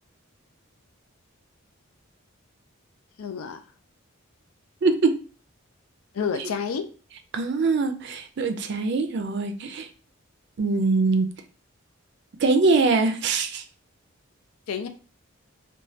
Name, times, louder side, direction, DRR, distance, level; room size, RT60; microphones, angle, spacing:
voice 1, 3.2-3.6 6.1-6.8 14.7-14.9, left 6 dB, 80° left, 8 dB, 0.4 m, -29 dB
voice 2, 4.8-5.2 7.3-9.9 10.6-11.3 12.4-13.6, right 3 dB, 55° right, 7 dB, 0.4 m, -23 dB
3.0 x 2.2 x 2.7 m, 0.36 s
head